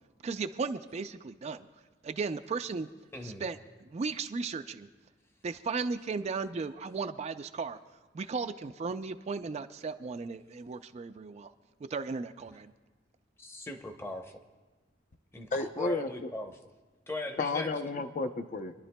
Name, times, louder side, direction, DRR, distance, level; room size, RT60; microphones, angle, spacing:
voice 1, 0.2-1.7 2.0-2.9 3.2-4.9 5.4-7.8 8.1-11.5 11.9-12.7, right 4 dB, 35° right, 9 dB, 0.3 m, -35 dB
voice 2, 3.1-3.4 13.4-14.4 15.3-16.5 17.1-17.7, left 1 dB, 15° left, 5 dB, 0.7 m, -39 dB
voice 3, 15.5-16.3 17.4-18.7, left 3 dB, 45° left, 8 dB, 0.5 m, -32 dB
28.0 x 11.0 x 2.2 m, 1.3 s
head